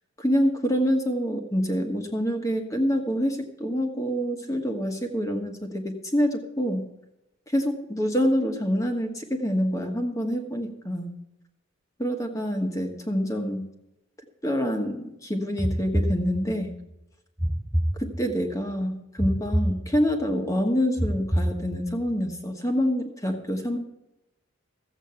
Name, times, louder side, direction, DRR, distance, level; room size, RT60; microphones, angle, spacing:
voice 1, 0.2-6.9 7.5-11.2 12.0-13.7 14.4-16.7 18.0-23.8, equal, 15° left, 4 dB, 1.3 m, -26 dB
sound 1, 15.6-16.8 17.4-18.6 19.2-20.3 21.0-22.1, equal, 5° right, 0.5 m, -28 dB
14.5 x 8.1 x 5.8 m, 0.89 s
head